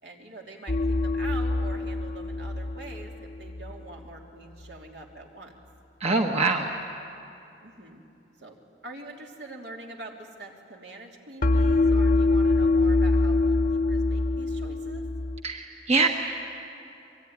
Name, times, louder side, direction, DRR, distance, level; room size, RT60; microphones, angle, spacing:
voice 1, 0.0-5.5 7.6-8.1 8.4-8.6 8.8-15.1, right 2 dB, 70° right, 0 dB, 3.2 m, -44 dB
sound 1, 0.7-3.8 11.4-15.4, left 2 dB, 50° left, 0.9 m, -24 dB
voice 2, 6.0-6.8 15.4-16.1, right 3 dB, 35° right, 2 dB, 1.3 m, -24 dB
24.5 x 23.0 x 9.7 m, 2.7 s
head